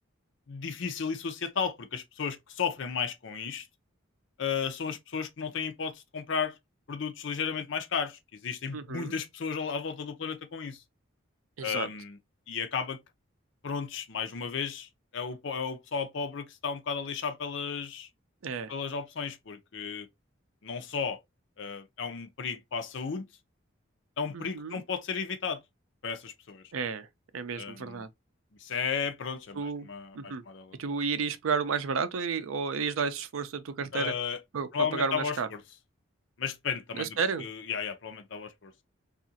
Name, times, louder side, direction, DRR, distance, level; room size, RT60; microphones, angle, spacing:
voice 1, 0.5-3.7 4.4-6.6 6.9-10.8 11.6-12.2 12.5-13.0 13.6-18.1 18.7-20.1 20.6-21.2 21.6-23.3 24.2-25.6 26.0-26.6 27.6-28.0 28.6-30.8 33.9-34.4 34.7-35.6 36.4-38.7, left 6 dB, 60° left, 0.5 m, -34 dB
voice 2, 8.7-9.2 11.6-11.9 18.4-18.7 24.3-24.8 26.7-27.1 27.3-28.1 29.5-29.9 30.1-30.4 30.8-34.1 34.5-35.5 36.9-37.5, right 5 dB, 85° right, 0.5 m, -32 dB
2.8 x 2.4 x 2.6 m
head